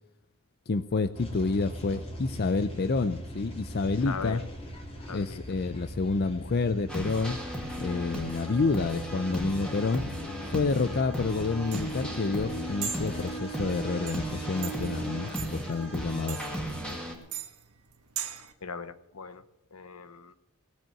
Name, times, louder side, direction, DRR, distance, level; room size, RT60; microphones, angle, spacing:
voice 1, 0.7-4.4 5.1-7.4 7.8-10.0 10.5-16.4, left 3 dB, 45° left, 12 dB, 0.5 m, -29 dB
sound 1, 1.1-17.0, right 1 dB, 25° left, 2.6 m, -41 dB
voice 2, 4.0-4.4 5.1-5.4 18.6-19.4 19.7-20.3, left 5 dB, 80° left, 12 dB, 0.9 m, -39 dB
sound 2, 6.9-17.2, equal, 5° left, 2.2 m, -36 dB
sound 3, 11.1-18.5, right 9 dB, 90° right, 1.4 m, -41 dB
18.0 x 7.6 x 7.7 m, 0.83 s
head